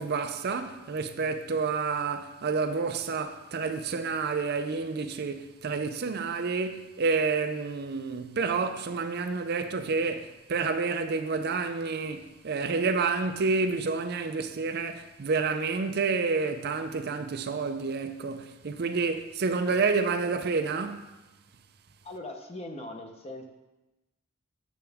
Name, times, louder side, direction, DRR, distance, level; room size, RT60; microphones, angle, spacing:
voice 1, 0.0-21.0, right 4 dB, 50° right, 0.5 m, -29 dB
voice 2, 22.0-23.5, left 1 dB, 30° left, 0.8 m, -40 dB
8.5 x 6.8 x 3.5 m
head